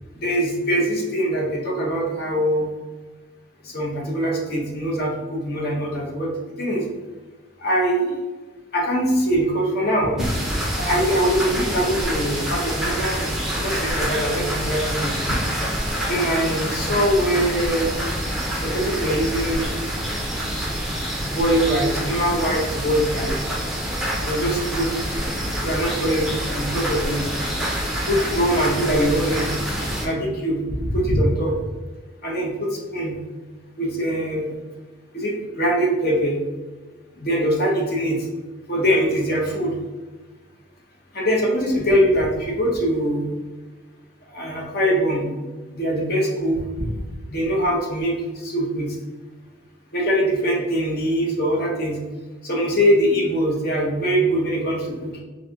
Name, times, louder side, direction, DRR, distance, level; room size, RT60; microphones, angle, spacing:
voice 1, 0.2-2.7 3.6-6.3 6.6-6.9 7.6-8.1 8.7-15.1 16.1-17.9 18.6-19.8 21.3-23.4 24.2-24.9 25.6-27.2 28.1-29.5 30.0-31.5 32.2-33.2 33.8-34.5 35.1-36.4 37.2-38.2 38.7-39.7 41.1-43.2 44.3-45.3 45.7-46.9 47.3-48.2 48.4-48.9 49.9-52.0 52.4-55.2, equal, 50° left, -2 dB, 0.7 m, -22 dB
sound 1, 10.2-30.1, equal, ahead, 0.4 m, -26 dB
4.2 x 2.6 x 2.3 m, 1.3 s
head